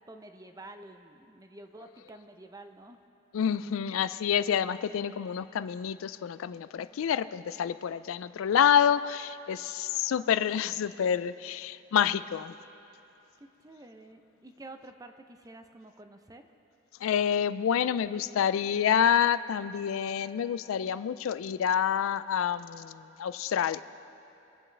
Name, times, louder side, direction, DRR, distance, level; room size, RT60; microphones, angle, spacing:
voice 1, 0.1-3.0 13.4-16.5, right 2 dB, 15° right, 7 dB, 0.5 m, -49 dB
voice 2, 3.3-12.5 17.0-23.8, left 8 dB, 85° left, 14 dB, 0.3 m, -28 dB
24.5 x 8.5 x 3.3 m, 2.9 s
head